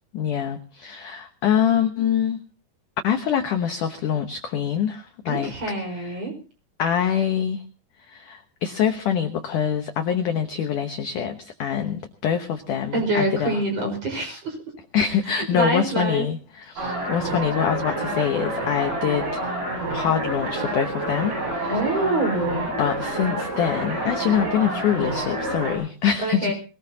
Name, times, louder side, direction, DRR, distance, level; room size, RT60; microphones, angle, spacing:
voice 1, 0.1-2.4 3.0-5.5 6.0-6.1 6.8-7.6 8.0-13.6 14.9-19.2 19.9-22.0 22.8-26.5, left 8 dB, 70° left, 6 dB, 2.0 m, -25 dB
voice 2, 5.3-6.3 12.9-14.6 15.5-16.2 21.6-22.7 26.2-26.5, right 2 dB, 35° right, 3 dB, 6.0 m, -25 dB
sound 1, 16.8-25.8, right 1 dB, 80° right, 9.6 m, -28 dB
22.0 x 19.0 x 2.9 m, 0.36 s
omnidirectional pair, 4.9 m